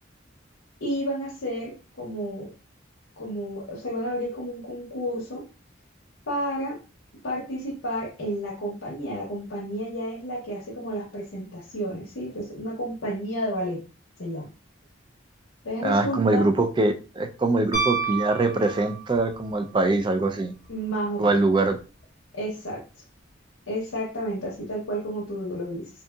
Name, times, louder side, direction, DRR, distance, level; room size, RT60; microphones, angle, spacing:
voice 1, 0.8-2.5 3.2-5.4 6.3-6.8 7.2-13.8 14.2-14.5 15.6-16.4 20.7-21.4 22.3-22.8 23.7-25.9, equal, 75° left, 0.7 m, -31 dB
voice 2, 15.8-20.5 21.2-21.8, right 2 dB, 25° right, 0.3 m, -23 dB
Piano, 17.7-19.3 21.7-21.8, right 5 dB, 40° left, 0.7 m, -29 dB
2.7 x 2.6 x 2.2 m
head